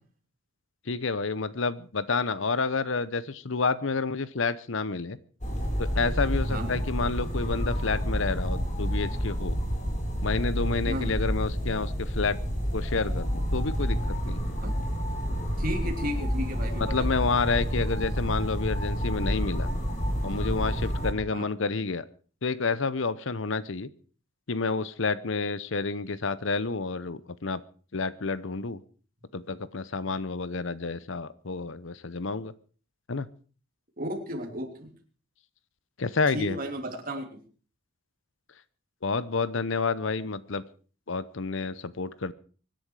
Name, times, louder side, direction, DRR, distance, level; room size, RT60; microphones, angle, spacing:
voice 1, 0.9-5.2 5.8-9.6 10.2-12.4 12.7-14.0 14.3-14.4 16.8-19.7 20.2-22.0 22.4-23.9 24.5-27.6 27.9-28.8 29.3-32.5 33.1-33.3 36.0-36.6 39.0-40.6 41.1-42.3, left 4 dB, 60° left, 17 dB, 0.8 m, -29 dB
sound 1, 5.4-21.1, equal, 35° left, 4.1 m, -29 dB
voice 2, 6.5-6.8 10.8-11.1 14.6-14.7 15.6-17.1 21.3-21.4 34.0-34.9 36.3-37.2, equal, 40° right, 2 dB, 3.3 m, -33 dB
24.5 x 10.5 x 4.8 m, 0.40 s
head